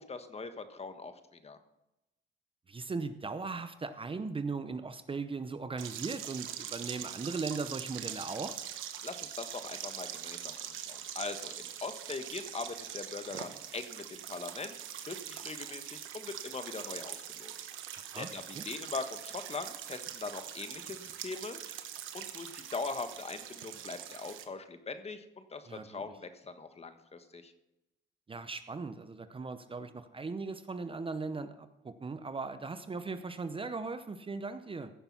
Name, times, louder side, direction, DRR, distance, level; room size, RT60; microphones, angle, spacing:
voice 1, 0.0-1.6 9.0-17.6 18.1-21.8 22.1-27.5, left 4 dB, 30° left, 8 dB, 1.3 m, -41 dB
voice 2, 2.7-8.6 18.1-18.6 25.7-26.0 28.3-34.9, right 4 dB, 25° right, 10 dB, 0.8 m, -38 dB
sound 1, 5.8-24.4, right 10 dB, 90° right, 1.1 m, -43 dB
15.5 x 6.7 x 5.9 m, 0.94 s
cardioid pair, 90°, 20 cm